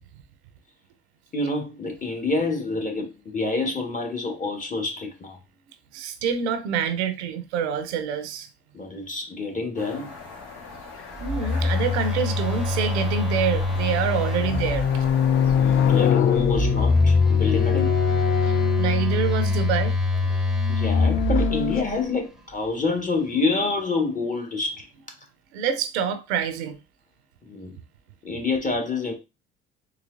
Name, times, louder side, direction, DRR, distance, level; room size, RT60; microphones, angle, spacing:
voice 1, 1.3-5.4 8.7-10.1 15.5-18.1 20.7-24.9 27.4-27.8 28.2-29.1, left 3 dB, 25° left, 1.3 m, -27 dB
voice 2, 5.9-8.5 11.2-15.1 18.4-20.0 25.5-26.8, right 7 dB, 80° right, 0.6 m, -26 dB
sound 1, 9.8-16.1, left 3 dB, 70° left, 1.4 m, -39 dB
Telephone, 11.1-15.2 16.3-22.0, left 3 dB, ahead, 0.8 m, -24 dB
sound 2, 11.3-11.4 13.1-13.8 14.2-19.7 20.5-21.8, left 9 dB, 40° left, 0.4 m, -24 dB
3.9 x 2.9 x 2.5 m
hypercardioid pair, 55°, 33 cm